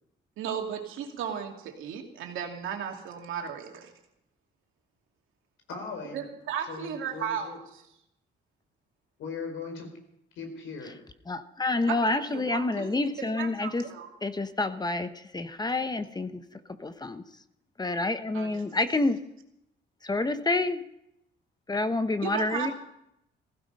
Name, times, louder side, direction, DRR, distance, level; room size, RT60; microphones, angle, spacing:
voice 1, 0.4-3.9 6.1-7.8 11.9-13.0 13.4-14.1 18.3-18.6 22.2-22.7, right 8 dB, 85° right, 2 dB, 2.6 m, -35 dB
voice 2, 5.7-6.3 6.7-7.6 9.2-9.9 10.4-11.0, left 4 dB, 80° left, 4 dB, 4.4 m, -39 dB
voice 3, 11.3-13.9 14.2-16.4 16.8-17.2 17.8-19.2 20.0-20.8 21.7-22.7, left 2 dB, 20° left, 10 dB, 1.0 m, -28 dB
16.0 x 15.5 x 5.5 m, 0.82 s
cardioid pair, 90°, 20 cm